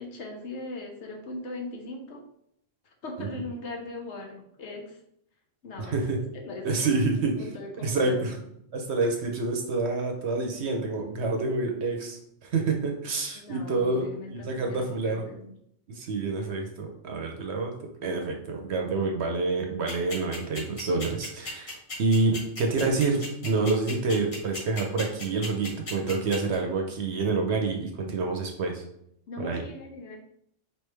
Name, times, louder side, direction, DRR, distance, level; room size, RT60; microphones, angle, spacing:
voice 1, 0.0-2.3 2.8-5.0 5.6-8.4 13.3-15.6 29.3-30.2, left 2 dB, 65° left, 2 dB, 1.1 m, -40 dB
voice 2, 5.9-6.2 6.6-7.3 7.8-8.3 8.7-15.2 15.9-17.7 18.0-28.8 29.4-29.6, right 3 dB, 60° right, 2 dB, 0.9 m, -28 dB
sound 1, 19.9-26.5, left 3 dB, 85° left, 2.2 m, -36 dB
4.8 x 3.3 x 3.3 m, 0.72 s
omnidirectional pair, 1.3 m